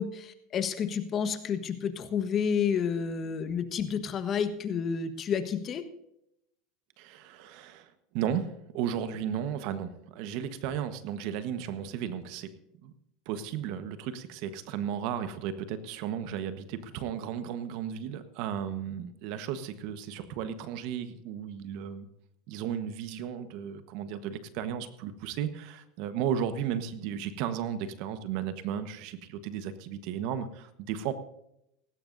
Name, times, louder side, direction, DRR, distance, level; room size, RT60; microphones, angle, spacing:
voice 1, 0.0-5.8, left 7 dB, 40° left, 10 dB, 1.3 m, -30 dB
voice 2, 7.0-12.5 12.8-12.9 13.2-22.1 22.5-31.1, right 9 dB, 65° right, 11 dB, 1.3 m, -34 dB
17.5 x 16.0 x 2.7 m, 0.80 s
hypercardioid pair, 95°, 0 cm